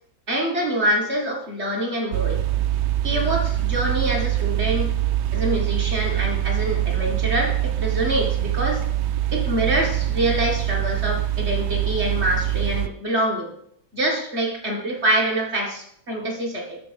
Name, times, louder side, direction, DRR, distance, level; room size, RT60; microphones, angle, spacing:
voice 1, 0.3-2.4 3.0-4.9 5.3-8.8 9.3-13.5 13.9-16.8, right 1 dB, 35° right, -1 dB, 1.8 m, -25 dB
sound 1, 2.1-12.9, right 13 dB, 80° right, 1.3 m, -24 dB
13.0 x 4.7 x 5.2 m, 0.72 s
omnidirectional pair, 2.2 m